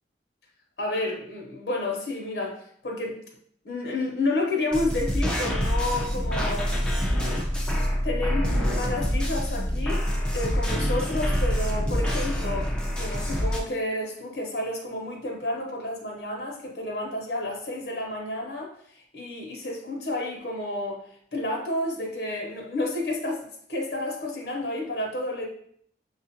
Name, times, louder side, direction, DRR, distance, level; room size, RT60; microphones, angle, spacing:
voice 1, 0.8-3.2 3.6-6.8 8.0-10.0 10.3-12.7 13.0-18.7 19.1-21.0 21.3-25.5, left 2 dB, 75° left, 0 dB, 1.0 m, -30 dB
sound 1, 4.7-13.6, equal, 5° left, 0.5 m, -26 dB
6.2 x 2.4 x 2.8 m, 0.64 s
head